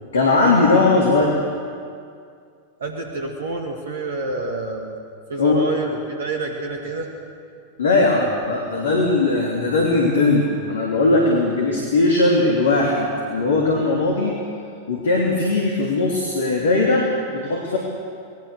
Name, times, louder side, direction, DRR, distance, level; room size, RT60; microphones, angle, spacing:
voice 1, 0.1-1.4 5.4-5.6 7.8-14.3 14.9-17.8, left 2 dB, 65° left, -1 dB, 3.1 m, -19 dB
voice 2, 2.8-4.9 5.3-7.1, right 3 dB, 65° right, 2 dB, 2.1 m, -28 dB
27.0 x 20.0 x 6.7 m, 2.3 s
figure-of-eight pair, 90°, 0 cm